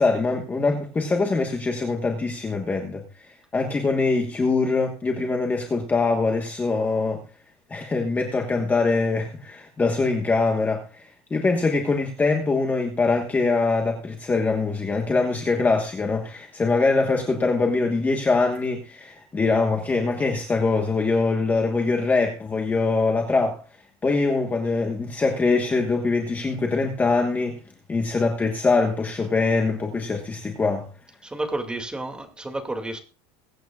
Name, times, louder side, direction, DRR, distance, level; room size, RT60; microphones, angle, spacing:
voice 1, 0.0-7.2 7.7-23.6 24.0-27.6 27.9-30.9, left 3 dB, 10° left, 1.3 m, -23 dB
voice 2, 31.2-33.0, right 2 dB, 5° right, 2.3 m, -31 dB
22.5 x 9.0 x 2.4 m
cardioid pair, 165°, 13 cm